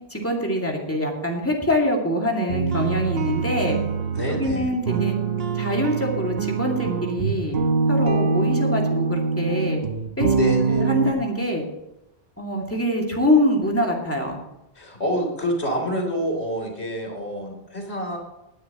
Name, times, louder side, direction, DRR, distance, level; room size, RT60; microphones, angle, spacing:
voice 1, 0.1-3.8 4.3-5.2 5.5-7.6 7.9-9.8 10.2-10.3 10.7-11.6 12.4-14.4, left 1 dB, 10° left, -1 dB, 2.4 m, -24 dB
sound 1, 2.5-11.1, right 4 dB, 65° right, 1.2 m, -24 dB
voice 2, 4.1-4.7 10.3-10.9 14.8-18.2, equal, 80° left, 1 dB, 3.8 m, -27 dB
19.0 x 9.8 x 3.0 m, 0.90 s
omnidirectional pair, 1.1 m